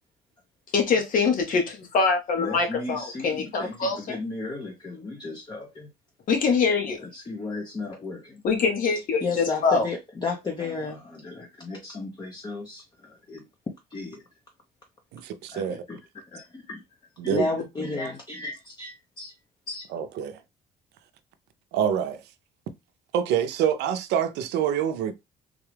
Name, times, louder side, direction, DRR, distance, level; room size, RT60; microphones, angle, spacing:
voice 1, 0.7-4.2 6.3-7.1 8.4-9.9, left 5 dB, 55° left, 1.4 m, -24 dB
voice 2, 2.4-5.9 7.0-8.4 9.2-13.4 13.9-14.2 15.5-16.0 16.3-16.8 17.2-19.3 19.7-19.9, left 3 dB, 25° left, 0.8 m, -34 dB
voice 3, 15.1-15.8 17.2-17.5 19.9-20.4 21.7-22.2 23.1-25.1, right 8 dB, 85° right, 0.5 m, -26 dB
3.6 x 2.3 x 3.2 m
cardioid pair, 110°, 17 cm